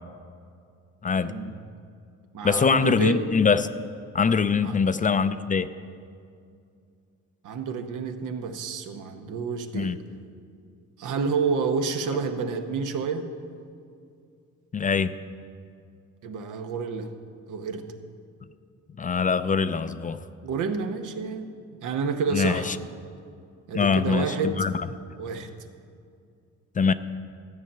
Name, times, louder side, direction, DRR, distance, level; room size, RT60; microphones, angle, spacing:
voice 1, 1.2-1.5 2.3-3.2 4.6-4.8 7.4-10.0 11.0-13.3 16.2-17.1 17.5-17.8 20.4-21.5 21.8-22.8 23.7-24.7 25.2-25.5, right 5 dB, 85° right, 6 dB, 1.0 m, -29 dB
voice 2, 2.4-3.7 4.1-5.7 9.7-10.0 14.7-15.1 19.0-20.2 22.3-22.8 23.7-24.7 26.8-26.9, left 5 dB, 25° left, 12 dB, 0.4 m, -23 dB
13.0 x 5.6 x 8.8 m, 2.3 s
cardioid pair, 90°, 30 cm